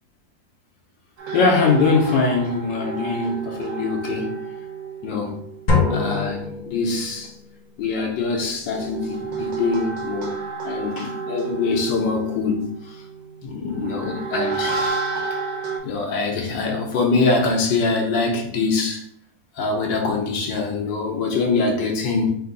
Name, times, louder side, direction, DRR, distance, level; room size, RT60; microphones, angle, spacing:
sound 1, 1.2-6.2 8.4-15.8, right 4 dB, 75° right, 1.5 m, -31 dB
voice 1, 1.3-4.3 5.0-5.3 5.9-6.4 6.7-7.3 7.8-10.4 10.6-12.7 13.4-14.8 15.8-19.0 19.6-22.3, left 4 dB, 80° left, 1 dB, 1.5 m, -23 dB
sound 2, 5.7-7.4, left 4 dB, 35° left, 0.8 m, -23 dB
3.8 x 2.7 x 3.9 m, 0.67 s
omnidirectional pair, 2.0 m